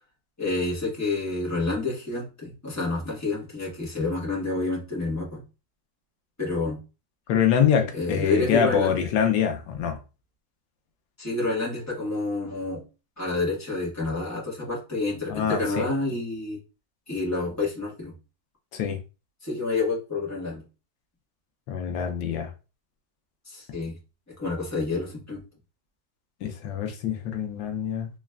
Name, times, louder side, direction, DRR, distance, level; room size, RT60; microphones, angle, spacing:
voice 1, 0.4-5.4 6.4-6.8 7.9-9.0 11.2-12.8 13.2-16.6 17.1-18.1 19.4-20.6 23.4-24.0 24.4-25.4, left 3 dB, 10° left, 1.5 m, -28 dB
voice 2, 7.3-10.0 15.3-15.8 18.7-19.0 21.7-22.5 26.4-28.1, left 7 dB, 85° left, 1.4 m, -25 dB
4.0 x 3.2 x 2.3 m
omnidirectional pair, 1.9 m